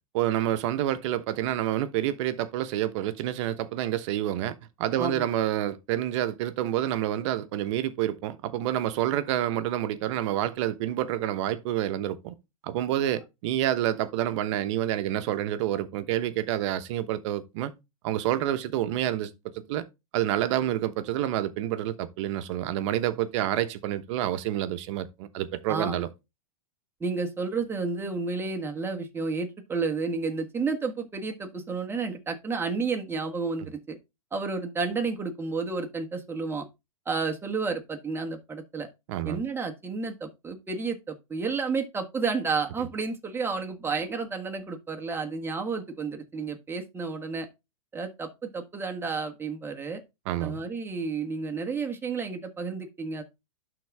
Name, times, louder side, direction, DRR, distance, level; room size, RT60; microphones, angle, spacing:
voice 1, 0.1-12.3 12.6-17.7 18.0-19.3 19.7-19.8 20.1-26.1 39.1-39.4 50.3-50.7, right 12 dB, 55° right, 1.1 m, -28 dB
voice 2, 27.0-34.0 34.3-36.6 37.0-38.9 39.2-47.5 47.9-50.0 50.4-53.2, right 4 dB, 10° right, 1.5 m, -31 dB
11.5 x 4.0 x 3.5 m
hypercardioid pair, 125°, 18 cm